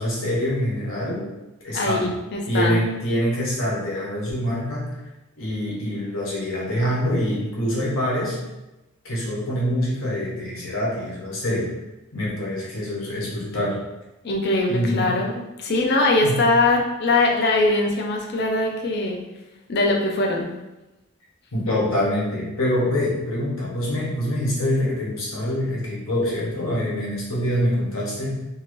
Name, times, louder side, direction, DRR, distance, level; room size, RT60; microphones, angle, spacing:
voice 1, 0.0-1.3 1.6-2.1 2.5-5.0 5.4-8.4 9.0-11.7 12.1-13.8 14.7-15.2 16.2-16.4 21.5-28.5, equal, 75° left, -5 dB, 1.0 m, -25 dB
voice 2, 1.7-2.8 14.2-19.2 19.7-20.5, left 2 dB, 50° left, 1 dB, 0.5 m, -21 dB
2.7 x 2.5 x 3.0 m, 0.99 s
head